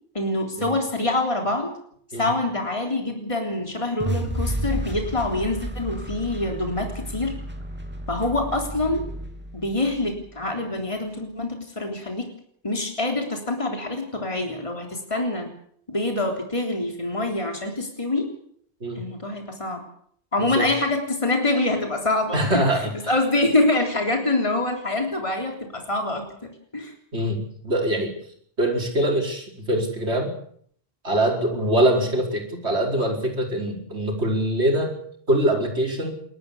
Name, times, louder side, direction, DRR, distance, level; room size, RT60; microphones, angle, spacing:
voice 1, 0.1-1.8 2.2-7.3 8.1-9.0 9.5-12.3 12.6-15.5 15.9-18.3 19.0-19.8 20.3-22.6 23.1-26.9, left 2 dB, 30° left, 2 dB, 3.7 m, -25 dB
sound 1, 4.0-10.2, right 1 dB, 10° right, 2.6 m, -32 dB
voice 2, 20.4-20.7 22.3-23.1 27.1-28.1 28.6-30.3 31.0-34.9 35.3-36.1, right 1 dB, 90° right, 1 dB, 5.4 m, -23 dB
29.0 x 13.5 x 8.5 m, 0.64 s
omnidirectional pair, 1.1 m